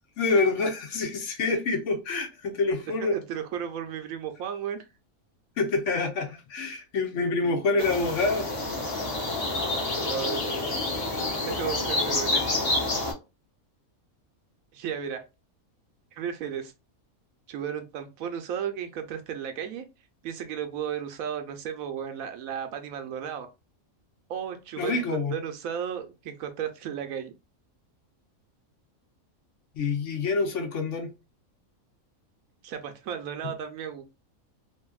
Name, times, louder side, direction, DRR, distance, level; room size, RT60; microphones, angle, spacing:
voice 1, 0.2-3.1 5.6-8.5 24.8-25.4 29.8-31.1, left 3 dB, 65° left, 0.9 m, -26 dB
voice 2, 3.0-4.8 7.4-7.8 10.1-10.5 11.4-12.4 14.7-15.2 16.1-16.7 17.5-19.8 20.2-23.5 24.3-27.3 32.6-34.0, right 8 dB, 80° right, 1.0 m, -34 dB
sound 1, 7.8-13.1, left 2 dB, 35° left, 0.8 m, -28 dB
2.7 x 2.5 x 2.3 m
omnidirectional pair, 1.5 m